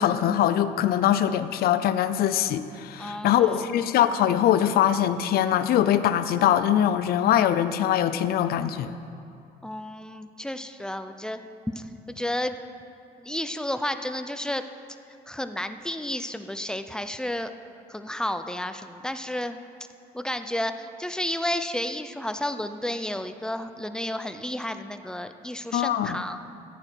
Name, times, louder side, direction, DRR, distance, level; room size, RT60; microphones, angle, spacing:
voice 1, 0.0-8.9 25.7-26.2, left 10 dB, 65° left, 12 dB, 0.6 m, -22 dB
voice 2, 3.0-3.7 9.6-11.4 11.7-12.5 13.2-14.6 15.3-17.5 17.9-19.6 20.1-26.4, left 1 dB, 5° left, 9 dB, 0.5 m, -32 dB
14.5 x 8.7 x 4.6 m, 2.6 s
cardioid pair, 110°, 17 cm